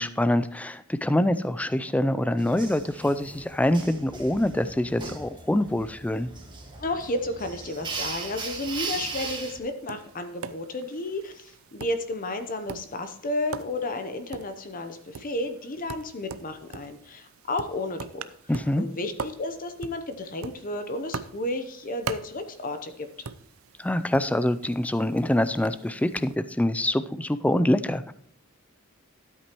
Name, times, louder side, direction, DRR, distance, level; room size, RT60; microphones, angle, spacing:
voice 1, 0.0-6.3 18.5-18.8 23.8-28.1, left 1 dB, 5° left, 13 dB, 0.3 m, -25 dB
sound 1, 2.4-9.6, right 4 dB, 20° right, 1.6 m, -38 dB
voice 2, 6.8-18.2 18.8-23.3, left 2 dB, 40° left, 8 dB, 0.8 m, -32 dB
Tap, 9.6-26.4, right 5 dB, 75° right, 0.5 m, -42 dB
12.5 x 8.4 x 3.0 m, 0.67 s
head